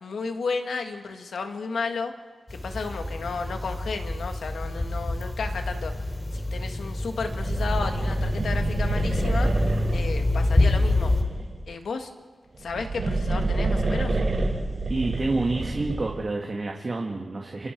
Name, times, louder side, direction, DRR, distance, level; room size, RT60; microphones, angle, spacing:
voice 1, 0.0-2.1 2.5-5.9 6.3-9.5 9.9-11.1 11.7-12.1 12.6-14.2, left 4 dB, 85° left, 5 dB, 1.8 m, -33 dB
sound 1, 2.5-11.2, left 1 dB, 25° left, 3.2 m, -26 dB
sound 2, 7.2-11.6 12.5-16.2, right 2 dB, 60° right, 7.9 m, -28 dB
voice 2, 14.9-17.7, right 3 dB, 45° right, 1 dB, 2.0 m, -28 dB
27.0 x 27.0 x 4.7 m, 1.5 s
wide cardioid pair, 90°, 0 cm